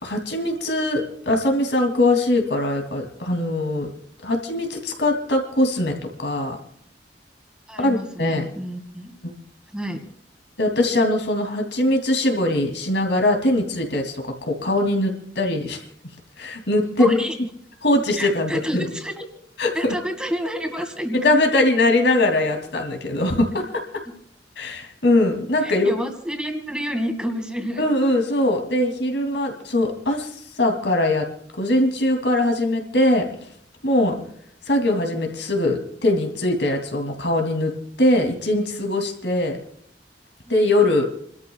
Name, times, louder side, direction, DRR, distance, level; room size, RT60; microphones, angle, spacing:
voice 1, 0.0-3.9 4.2-6.6 7.8-8.5 9.2-9.3 10.6-15.8 16.4-17.2 17.8-18.9 19.6-19.9 21.1-23.6 24.6-25.9 27.8-30.3 30.6-31.3 31.6-33.2 33.8-34.2 34.7-37.7 38.0-39.5 40.5-41.0, left 1 dB, 75° left, 3 dB, 2.9 m, -21 dB
voice 2, 7.7-9.2 9.7-10.0 17.0-17.3 18.2-19.2 19.7-21.2 25.6-27.8 40.5-40.6, equal, 5° right, 3 dB, 2.2 m, -29 dB
30.0 x 13.0 x 2.4 m, 0.66 s
head